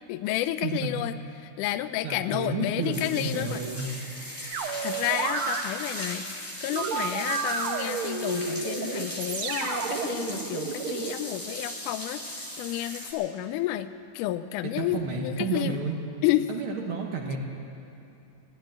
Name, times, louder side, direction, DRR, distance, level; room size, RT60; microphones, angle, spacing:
voice 1, 0.1-1.2 1.4-3.6 4.5-13.9 14.1-15.8 16.2-16.5, left 14 dB, 80° left, 12 dB, 2.0 m, -31 dB
voice 2, 0.6-1.0 2.0-3.9 14.6-16.0 16.5-17.4, right 4 dB, 60° right, 1 dB, 1.5 m, -31 dB
sound 1, 2.9-13.1, equal, 5° left, 2.0 m, -38 dB
sound 2, 4.5-5.6 6.7-11.2, right 5 dB, 80° right, 1.2 m, -31 dB
13.5 x 12.0 x 9.0 m, 2.7 s
omnidirectional pair, 3.8 m